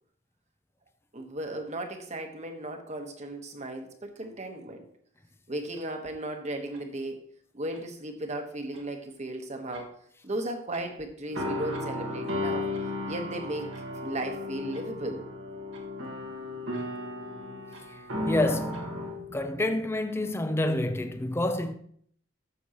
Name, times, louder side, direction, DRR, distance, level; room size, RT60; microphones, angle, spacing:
voice 1, 1.1-4.9 5.5-7.3 7.5-10.0 10.2-12.7 13.1-13.7 14.0-15.2, right 1 dB, 35° right, 1.3 m, -35 dB
sound 1, 5.7-5.9 6.7-6.9 7.7-7.9 8.7-8.9 9.7-10.0 10.2-11.0 11.3-11.4 11.7-12.0 12.7-12.9 13.7-13.9 14.5-14.9 15.7-15.9 16.7-16.9 17.7-18.0 18.7-18.9, right 3 dB, 70° right, 1.8 m, -52 dB
sound 2, 11.3-19.8, left 2 dB, 85° right, 1.6 m, -35 dB
voice 2, 18.3-21.7, left 1 dB, 15° left, 0.6 m, -28 dB
14.0 x 7.1 x 3.0 m
head